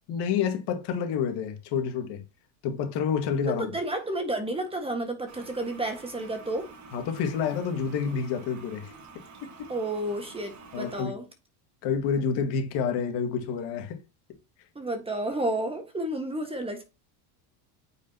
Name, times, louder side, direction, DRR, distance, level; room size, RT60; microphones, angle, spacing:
voice 1, 0.1-2.2 2.6-3.7 6.9-8.9 9.6-9.7 10.7-11.1 11.8-14.0, left 6 dB, 60° left, 1.9 m, -28 dB
voice 2, 3.5-6.7 9.7-11.2 14.7-16.8, right 1 dB, 10° right, 1.5 m, -31 dB
Toilet flush, 5.3-11.0, right 4 dB, 35° right, 1.6 m, -49 dB
8.8 x 5.2 x 2.8 m
supercardioid pair, 125°, 47 cm